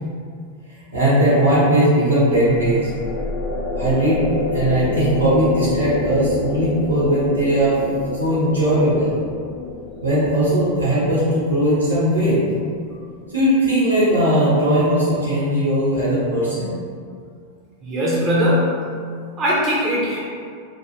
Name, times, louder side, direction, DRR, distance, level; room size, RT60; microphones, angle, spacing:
voice 1, 0.9-2.9 3.7-4.2 4.5-7.8 8.2-9.1 10.0-12.4 13.3-16.7, right 1 dB, 90° right, -9 dB, 0.9 m, -18 dB
sound 1, 2.2-13.6, left 2 dB, 10° left, 0.7 m, -28 dB
voice 2, 17.8-18.8 19.4-20.2, equal, 25° right, -6 dB, 0.6 m, -20 dB
3.2 x 2.3 x 2.8 m, 2.2 s
figure-of-eight pair, 90°, 0 cm